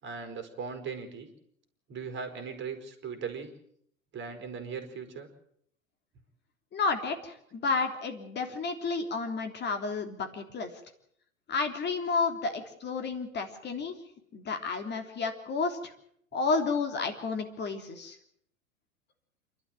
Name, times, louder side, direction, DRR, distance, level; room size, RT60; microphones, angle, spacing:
voice 1, 0.0-1.3 1.9-3.5 4.1-5.3, right 5 dB, 30° right, 7 dB, 4.4 m, -38 dB
voice 2, 6.7-10.7 11.5-13.9 14.3-15.9 16.3-18.2, left 4 dB, 25° left, 6 dB, 3.3 m, -31 dB
27.5 x 12.5 x 8.9 m, 0.69 s
figure-of-eight pair, 95°, 40 cm